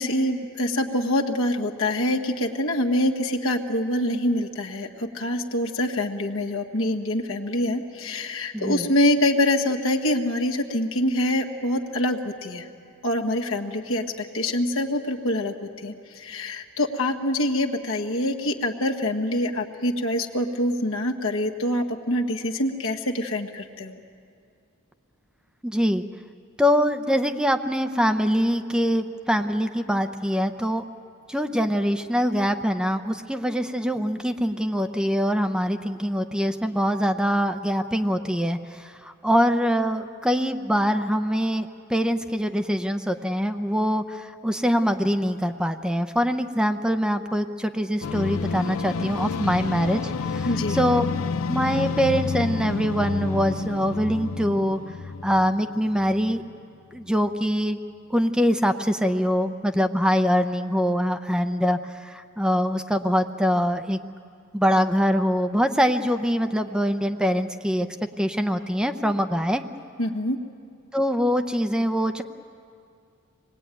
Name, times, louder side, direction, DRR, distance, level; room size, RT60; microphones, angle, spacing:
voice 1, 0.0-12.7 13.0-24.0 50.4-50.8 70.0-70.4, left 1 dB, 70° left, 1 dB, 1.7 m, -25 dB
voice 2, 8.5-8.9 25.6-26.0 26.6-30.8 31.3-51.0 51.5-54.8 55.2-56.4 56.9-57.8 58.1-64.0 64.5-67.9 68.2-69.6 70.9-72.2, equal, 5° right, 7 dB, 0.7 m, -24 dB
sound 1, 48.0-56.6, left 4 dB, 85° left, 0.6 m, -30 dB
25.5 x 20.5 x 9.2 m, 2.4 s
head